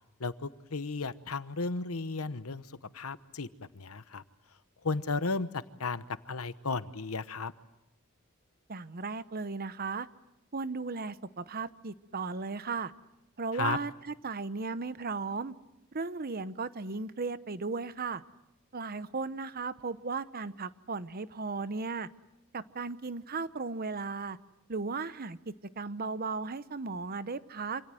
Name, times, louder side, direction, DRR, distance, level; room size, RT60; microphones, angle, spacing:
voice 1, 0.2-2.7 2.9-4.2 4.8-7.5 13.5-13.8, left 4 dB, 85° left, 13 dB, 1.1 m, -34 dB
voice 2, 8.7-10.1 10.5-12.9 13.4-15.5 15.9-18.2 18.7-22.1 22.5-24.4 24.7-27.8, right 4 dB, 45° right, 14 dB, 0.9 m, -36 dB
27.0 x 26.5 x 7.7 m, 0.89 s
head